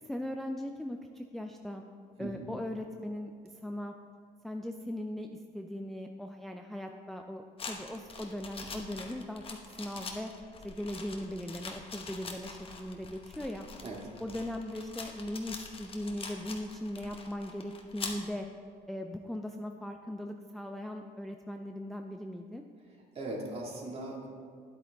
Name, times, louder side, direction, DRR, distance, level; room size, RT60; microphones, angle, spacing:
voice 1, 0.1-1.8 2.2-3.3 3.6-3.9 4.4-9.4 9.8-10.3 10.6-13.7 14.2-18.5 18.9-22.6, left 1 dB, ahead, 4 dB, 0.4 m, -39 dB
sound 1, 7.6-18.2, left 4 dB, 35° left, 1.1 m, -44 dB
voice 2, 23.1-24.3, right 2 dB, 35° right, -1 dB, 2.0 m, -39 dB
9.9 x 8.4 x 3.5 m, 2.2 s
cardioid pair, 110°, 17 cm